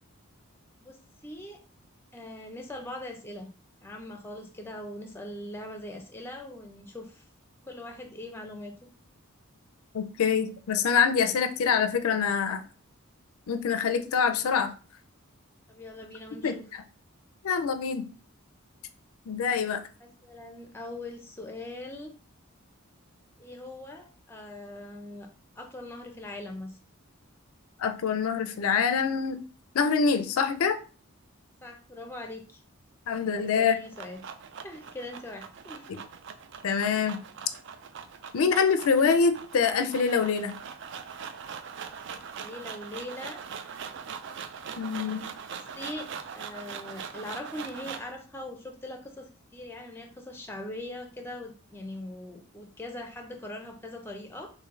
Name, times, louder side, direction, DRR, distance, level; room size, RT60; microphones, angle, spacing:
voice 1, 1.2-1.6 2.1-3.5 3.8-7.2 7.6-8.7 15.7-16.6 20.2-22.1 23.4-25.3 25.6-26.8 31.6-32.6 33.4-34.2 34.6-35.9 42.4-43.4 44.9-46.1 46.3-49.3 49.5-54.5, left 1 dB, 10° left, 3 dB, 0.5 m, -41 dB
voice 2, 9.9-12.6 13.5-14.7 16.4-16.5 17.4-18.1 19.3-19.8 27.8-29.4 29.7-30.8 33.1-33.8 35.9-36.0 36.6-37.2 38.3-40.5 44.8-45.2, left 6 dB, 80° left, 9 dB, 0.4 m, -25 dB
sound 1, 33.6-48.2, right 6 dB, 55° right, 0.3 m, -42 dB
3.1 x 2.6 x 3.7 m, 0.37 s
head